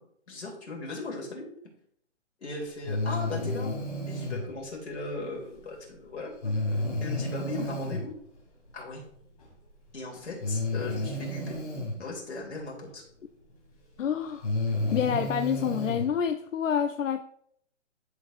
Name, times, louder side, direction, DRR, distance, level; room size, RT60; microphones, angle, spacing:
voice 1, 0.3-1.4 2.4-3.7 4.0-6.3 6.7-8.1 8.7-9.0 9.9-11.6 12.0-13.0, left 3 dB, 65° left, -1 dB, 2.9 m, -37 dB
Breathing, 2.8-4.4 6.4-8.0 9.4-9.5 10.4-12.0 13.5-13.6 14.3-16.1, left 1 dB, 30° left, 2.5 m, -31 dB
voice 2, 14.0-14.5 14.9-17.2, left 8 dB, 90° left, 7 dB, 0.6 m, -28 dB
12.0 x 4.7 x 2.5 m, 0.67 s
hypercardioid pair, 180°, 37 cm